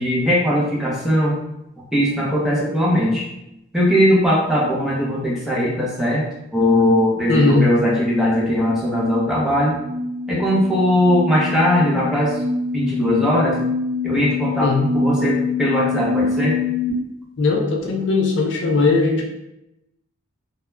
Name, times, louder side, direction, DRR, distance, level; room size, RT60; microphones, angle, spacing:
voice 1, 0.0-1.3 1.9-3.2 3.7-6.2 6.5-9.7 10.3-12.3 12.7-13.6 14.0-16.5, equal, 5° right, -6 dB, 0.6 m, -19 dB
voice 2, 7.3-7.6 14.6-14.8 17.4-19.3, left 3 dB, 55° left, 0 dB, 0.4 m, -18 dB
sound 1, 7.5-16.9, left 5 dB, 70° right, 0.6 m, -26 dB
2.2 x 2.2 x 3.1 m, 0.85 s
head